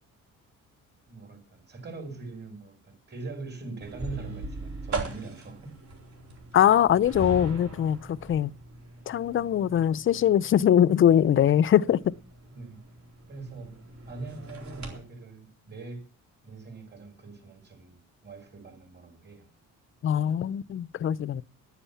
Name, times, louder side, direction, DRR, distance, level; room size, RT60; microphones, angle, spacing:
voice 1, 1.1-5.8 12.5-12.8 13.3-16.0 16.4-19.5, right 3 dB, 35° right, 5.0 m, -42 dB
sound 1, 3.8-15.0, right 2 dB, 60° right, 4.2 m, -40 dB
voice 2, 6.5-8.5 9.1-12.2 20.0-21.4, left 10 dB, 40° left, 0.5 m, -22 dB
10.0 x 9.9 x 7.0 m
cardioid pair, 105°, 32 cm